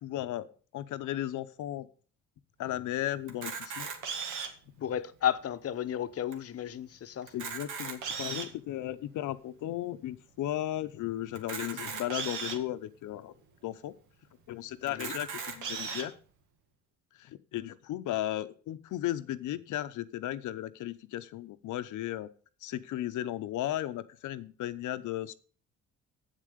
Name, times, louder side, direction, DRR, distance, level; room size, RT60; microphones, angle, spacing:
voice 1, 0.0-0.5 0.7-1.9 2.6-3.9 4.8-4.9 7.3-13.3 13.6-13.9 14.5-16.1 17.2-22.3 22.6-25.3, left 13 dB, 80° left, 0.8 m, -35 dB
Camera, 3.3-4.7 5.3-5.4 5.6-5.8 6.3-6.4 7.2-8.6 9.2-9.3 11.3-12.6 13.3-13.4 13.7-13.8 14.9-16.0, right 5 dB, 80° right, 2.0 m, -37 dB
voice 2, 4.8-7.3 14.9-15.2, left 10 dB, 50° left, 0.8 m, -33 dB
8.2 x 7.5 x 6.7 m
cardioid pair, 90°, 30 cm